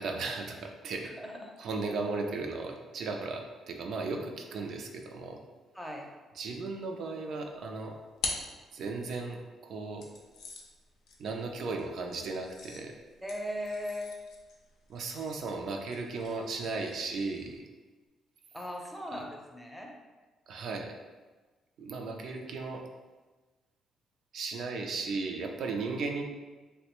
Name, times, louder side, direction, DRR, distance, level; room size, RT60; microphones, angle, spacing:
voice 1, 0.0-1.1 1.6-5.4 6.4-8.0 8.7-10.1 11.2-12.9 14.9-17.6 19.1-19.2 20.5-20.9 21.8-22.8 24.3-26.2, right 3 dB, 70° right, 3 dB, 0.4 m, -36 dB
voice 2, 1.0-1.5 5.7-6.1 13.2-14.2 18.5-19.9, equal, ahead, 0 dB, 0.5 m, -38 dB
sound 1, 7.5-9.3 10.0-17.6, left 4 dB, 90° left, 0.4 m, -45 dB
3.2 x 2.1 x 2.9 m, 1.3 s
cardioid pair, 90°, 0 cm